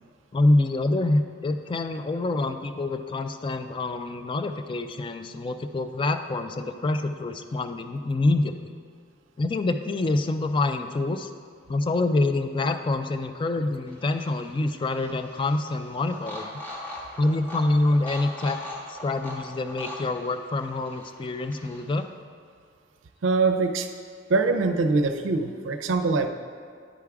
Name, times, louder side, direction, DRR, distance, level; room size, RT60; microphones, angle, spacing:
voice 1, 0.3-8.7 9.4-11.3 11.7-16.6 17.2-18.6 18.9-22.1, left 2 dB, 25° left, 8 dB, 0.3 m, -26 dB
sound 1, 13.9-22.0, left 1 dB, 10° left, 1.3 m, -41 dB
voice 2, 23.2-23.9 24.3-26.3, right 3 dB, 90° right, 7 dB, 0.5 m, -23 dB
10.0 x 3.5 x 4.7 m, 2.1 s
head